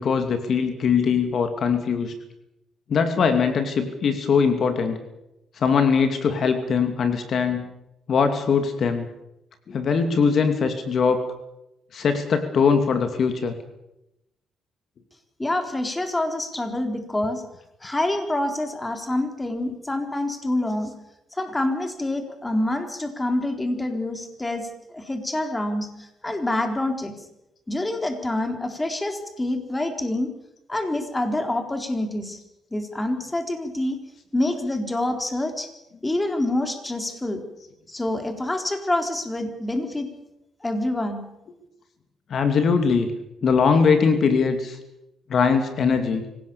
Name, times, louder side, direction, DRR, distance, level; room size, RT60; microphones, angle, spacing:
voice 1, 0.0-2.1 2.9-5.0 5.6-7.6 8.1-9.1 9.7-11.2 11.9-13.6 42.3-43.1 43.4-44.8 45.3-46.2, left 5 dB, 55° left, 7 dB, 2.6 m, -21 dB
voice 2, 15.4-17.4 17.8-20.9 21.3-27.1 27.7-30.3 30.7-32.4 32.7-34.0 34.3-35.7 36.0-37.4 37.9-40.1 40.6-41.3, left 1 dB, 15° left, 6 dB, 3.9 m, -26 dB
25.5 x 17.5 x 7.1 m, 0.86 s
cardioid pair, 90°, 0 cm